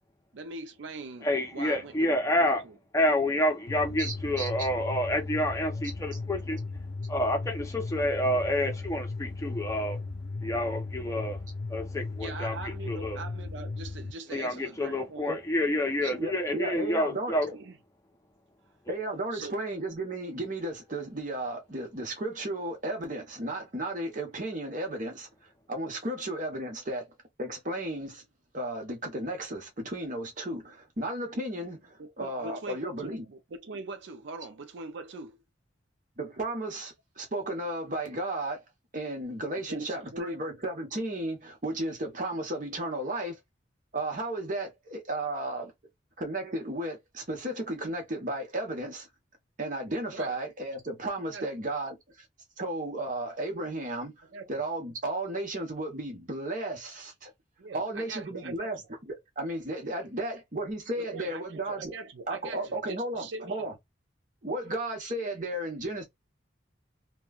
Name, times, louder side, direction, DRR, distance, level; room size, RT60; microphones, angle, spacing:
voice 1, 0.3-2.8 12.2-15.3 17.5-17.8 19.3-19.6 32.0-35.4 39.7-40.4 50.1-50.3 51.3-51.4 54.3-54.5 57.6-58.7 61.0-63.7, right 3 dB, 70° right, 0.5 m, -42 dB
voice 2, 1.2-2.6 2.9-6.6 7.1-10.0 10.4-11.4 11.7-13.2 14.3-17.5, left 1 dB, 15° left, 0.6 m, -28 dB
sound 1, 3.7-14.1, left 3 dB, 65° left, 0.6 m, -37 dB
voice 3, 4.0-4.7 15.3-15.4 16.0-17.4 18.9-25.3 25.7-27.1 27.4-28.2 28.5-33.3 36.2-38.6 38.9-43.4 43.9-45.7 46.2-49.1 49.6-52.0 52.6-54.1 54.5-57.3 57.7-61.9 62.3-63.7 64.4-66.0, right 1 dB, 45° right, 1.0 m, -34 dB
3.0 x 2.2 x 2.3 m
head